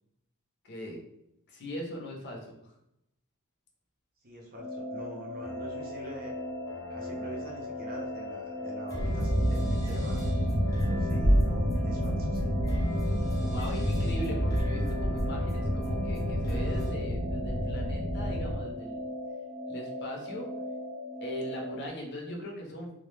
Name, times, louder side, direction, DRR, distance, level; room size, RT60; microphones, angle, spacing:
voice 1, 0.6-1.0 1.5-2.7 13.5-19.1 19.7-20.5 21.2-22.9, equal, 50° left, 0 dB, 0.6 m, -40 dB
voice 2, 4.2-6.4 6.9-10.3 10.8-12.5, right 1 dB, 40° right, -1 dB, 0.5 m, -45 dB
sound 1, 4.6-21.9, left 1 dB, 85° left, 0.8 m, -38 dB
sound 2, 5.4-16.9, left 2 dB, 15° left, 0.6 m, -43 dB
sound 3, 9.0-18.6, equal, 85° right, 0.6 m, -28 dB
2.2 x 2.0 x 3.1 m, 0.80 s
head